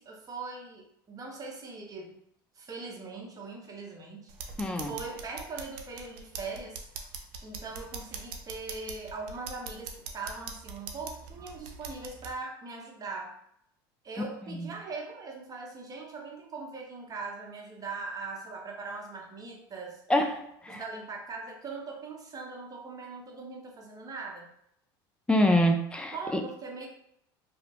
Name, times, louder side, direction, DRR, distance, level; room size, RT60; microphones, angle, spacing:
voice 1, 0.0-2.2 2.5-4.3 4.8-6.8 7.4-13.4 14.0-20.0 20.7-24.5 26.1-26.9, right 4 dB, 30° right, 0 dB, 0.8 m, -40 dB
sound 1, 4.3-12.3, right 5 dB, 65° right, 0.5 m, -43 dB
voice 2, 4.6-4.9 14.5-14.7 20.1-20.8 25.3-26.4, left 1 dB, 10° left, 4 dB, 0.4 m, -26 dB
2.7 x 2.0 x 2.9 m, 0.72 s
hypercardioid pair, 85°, 12 cm